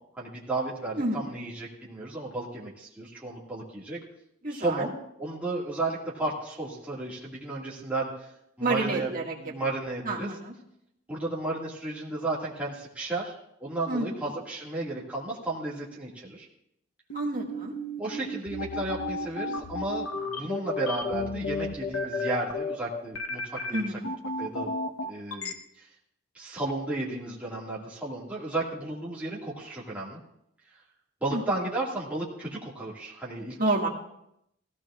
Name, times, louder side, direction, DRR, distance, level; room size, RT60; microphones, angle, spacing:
voice 1, 0.1-4.0 4.5-4.9 5.2-8.1 8.6-9.1 9.4-10.3 11.1-16.5 18.0-23.9 24.4-24.7 25.0-25.9 26.3-30.2 31.2-33.6, right 2 dB, 5° right, -7 dB, 2.0 m, -33 dB
voice 2, 0.9-1.5 4.4-4.9 8.6-9.5 10.0-10.5 13.9-14.1 17.1-17.7 23.7-24.1 31.3-31.4 33.4-33.9, right 2 dB, 40° right, -3 dB, 1.9 m, -29 dB
sound 1, 17.1-25.5, left 2 dB, 90° left, 1.1 m, -32 dB
18.0 x 15.5 x 2.4 m, 0.78 s
head